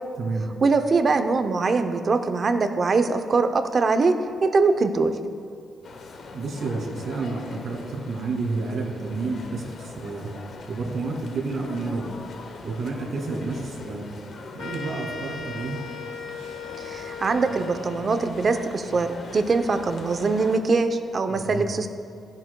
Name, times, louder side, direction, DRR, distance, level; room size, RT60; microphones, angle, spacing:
voice 1, 0.6-4.1 4.4-5.1 16.8-21.9, right 4 dB, 35° right, 8 dB, 0.6 m, -22 dB
sound 1, 5.8-20.6, left 3 dB, 55° left, 0.9 m, -42 dB
voice 2, 6.3-10.3 10.7-12.1 12.6-14.1 14.5-15.8 21.3-21.6, right 3 dB, 55° right, -2 dB, 2.1 m, -30 dB
sound 2, 14.6-18.2, left 5 dB, 85° left, 0.9 m, -38 dB
16.0 x 10.5 x 2.2 m, 2.2 s
wide cardioid pair, 145°, 0 cm